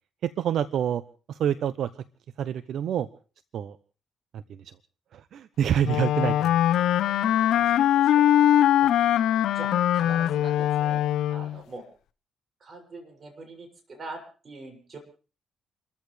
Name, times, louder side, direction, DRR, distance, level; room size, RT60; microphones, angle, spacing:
voice 1, 0.2-1.0 1.3-1.9 2.4-3.1 3.5-3.8 4.3-4.6 5.1-6.6, right 9 dB, 70° right, 14 dB, 0.7 m, -27 dB
Wind instrument woodwind instrument, 5.8-11.6, left 11 dB, 80° left, 0.8 m, -22 dB
voice 2, 7.2-8.3 8.8-8.9 9.5-11.0 11.3-11.8 12.6-15.0, right 2 dB, 40° right, 4 dB, 6.8 m, -43 dB
30.0 x 14.0 x 3.3 m, 0.37 s
cardioid pair, 90°, 0 cm